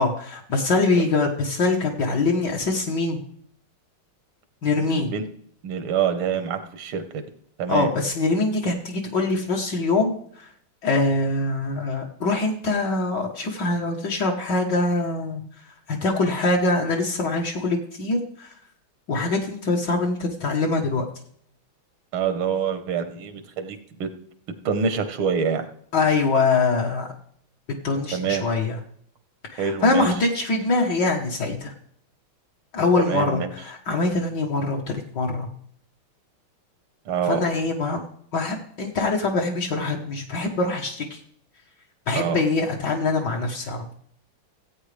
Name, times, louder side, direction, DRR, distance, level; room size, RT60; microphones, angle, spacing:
voice 1, 0.0-3.2 4.6-5.1 7.7-10.5 10.8-15.4 15.9-18.5 19.1-21.0 25.9-27.1 27.8-28.8 29.5-31.7 32.7-35.5 37.3-38.1 38.3-41.2 42.1-43.9, left 3 dB, 60° left, -1 dB, 1.8 m, -23 dB
voice 2, 4.8-5.3 5.6-7.2 7.6-7.9 22.1-24.1 24.7-25.7 28.1-28.4 29.6-30.1 33.0-33.5 37.1-37.4 42.2-42.4, right 7 dB, 85° right, 9 dB, 2.1 m, -26 dB
16.5 x 8.8 x 3.3 m, 0.63 s
omnidirectional pair, 2.3 m